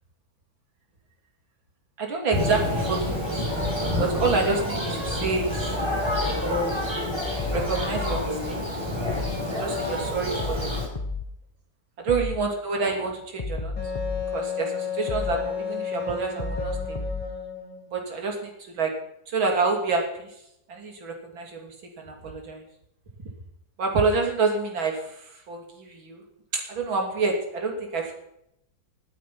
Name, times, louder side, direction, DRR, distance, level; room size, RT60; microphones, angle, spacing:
voice 1, 2.0-5.7 7.2-8.6 9.5-10.7 12.0-13.7 14.3-17.0 17.9-18.9 19.3-20.3 20.7-22.6 23.8-26.2 26.7-28.1, right 4 dB, 80° right, 1 dB, 3.6 m, -28 dB
Thunder, 2.3-10.9, left 1 dB, 15° right, 4.4 m, -28 dB
sound 1, 6.1-6.4 7.4-8.2 9.1-9.4 10.4-11.3 12.1-12.4 13.4-14.3 15.1-15.4 16.4-17.3, left 3 dB, 55° left, 0.4 m, -31 dB
Wind instrument woodwind instrument, 13.8-17.8, left 6 dB, 75° left, 5.1 m, -32 dB
16.5 x 11.5 x 5.9 m, 0.79 s
omnidirectional pair, 2.1 m